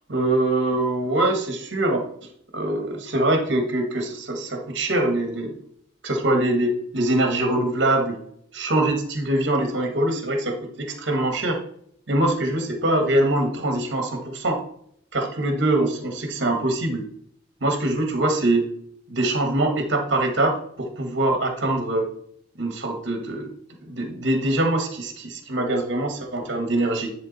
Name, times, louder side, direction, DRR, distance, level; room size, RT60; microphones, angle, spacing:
voice 1, 0.1-2.0 2.5-5.6 6.0-8.2 8.5-11.6 12.1-14.6 15.1-17.1 17.6-18.7 19.1-22.0 22.6-23.5 23.8-27.1, right 1 dB, 60° right, 4 dB, 1.2 m, -23 dB
9.7 x 3.6 x 3.9 m, 0.66 s
head